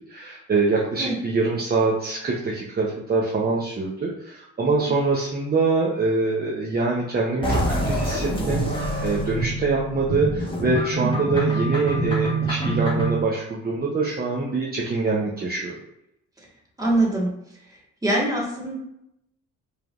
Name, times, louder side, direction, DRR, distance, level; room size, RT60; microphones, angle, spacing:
voice 1, 0.1-15.7, right 3 dB, 30° right, -3 dB, 0.8 m, -24 dB
sound 1, 7.4-13.2, right 2 dB, 15° left, 1.3 m, -25 dB
voice 2, 16.8-17.3 18.0-18.7, right 1 dB, 10° right, -4 dB, 1.6 m, -23 dB
4.8 x 3.4 x 2.5 m, 0.82 s
cardioid pair, 90°, 30 cm